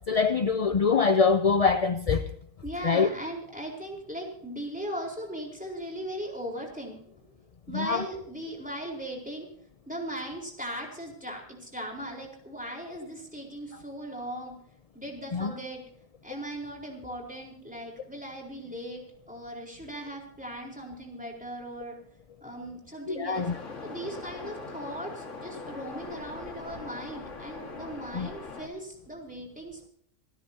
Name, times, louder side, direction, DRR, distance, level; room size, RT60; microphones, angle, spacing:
voice 1, 0.1-2.3 2.8-3.1 7.7-8.0 15.3-15.5 23.1-23.5 28.1-28.3, left 5 dB, 40° left, 9 dB, 0.5 m, -24 dB
voice 2, 2.6-7.2 7.7-9.5 9.9-14.6 14.9-15.8 16.2-22.0 22.4-23.5 23.8-29.9, right 1 dB, 5° right, -1 dB, 4.2 m, -38 dB
Waves surf, 23.3-28.7, left 3 dB, 65° left, 2.3 m, -41 dB
27.0 x 13.0 x 2.8 m, 0.66 s
omnidirectional pair, 1.3 m